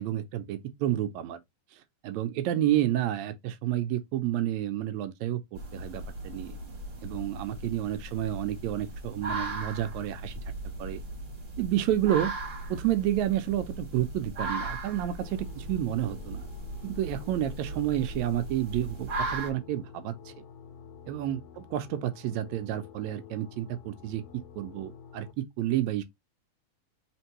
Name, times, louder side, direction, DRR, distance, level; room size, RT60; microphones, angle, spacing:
voice 1, 0.0-1.4 2.0-6.6 7.0-10.3 10.8-11.0 11.6-12.3 12.7-16.5 16.8-20.1 21.1-24.2 24.6-26.0, right 12 dB, 80° right, 1.8 m, -30 dB
sound 1, 5.6-19.5, right 2 dB, 35° right, 1.5 m, -37 dB
sound 2, 15.2-25.3, left 7 dB, 65° left, 1.9 m, -50 dB
4.3 x 3.6 x 2.9 m
omnidirectional pair, 3.4 m